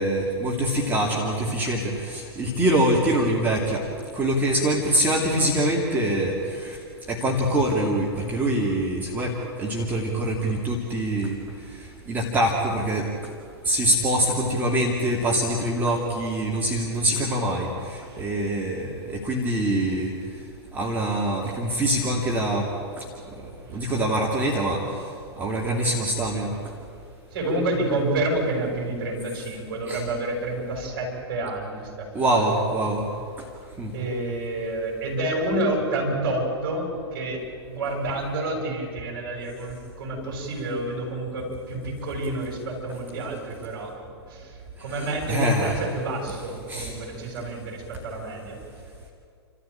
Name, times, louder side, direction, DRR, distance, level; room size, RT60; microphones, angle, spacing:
voice 1, 0.0-3.8 4.1-6.3 6.6-6.8 7.1-9.3 9.6-11.4 12.1-13.1 13.6-20.1 20.7-22.6 23.7-24.8 25.4-26.5 29.9-30.0 32.1-33.0 33.8-33.9 45.3-45.8 46.7-46.9, right 1 dB, 10° right, -2 dB, 2.7 m, -24 dB
voice 2, 27.3-32.4 33.9-37.4 37.7-43.9 44.3-48.6, right 2 dB, 50° right, 0 dB, 7.9 m, -29 dB
29.0 x 14.0 x 9.0 m, 2.3 s
figure-of-eight pair, 105°, 14 cm